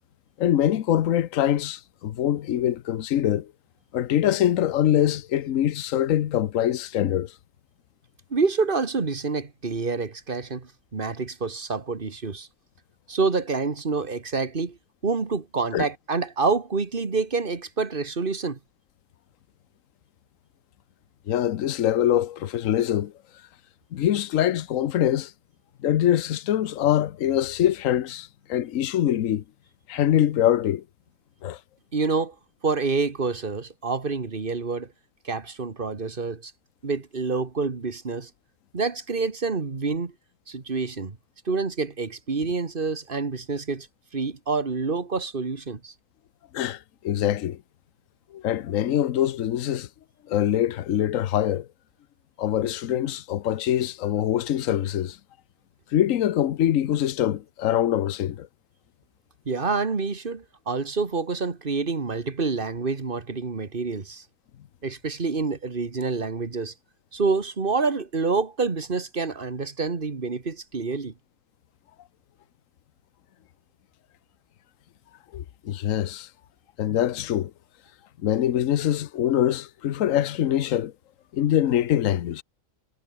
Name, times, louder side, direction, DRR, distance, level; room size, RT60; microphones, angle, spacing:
voice 1, 0.4-3.5 3.9-7.3 15.7-15.9 21.3-23.1 23.9-25.3 25.8-29.4 29.9-30.8 31.4-31.6 46.5-47.6 48.3-49.9 50.3-51.7 52.4-55.2 55.9-58.5 75.3-76.3 76.8-77.5 78.2-80.9 81.3-82.4, left 11 dB, 75° left, 1.2 m, -24 dB
voice 2, 8.3-12.5 13.1-14.8 15.0-18.6 31.9-32.4 32.6-34.9 35.2-36.5 36.8-38.3 38.7-40.1 40.5-41.2 41.5-43.9 44.1-45.9 59.5-64.2 64.8-66.7 67.1-71.1, right 4 dB, 40° right, 2.0 m, -27 dB
omnidirectional pair, 1.4 m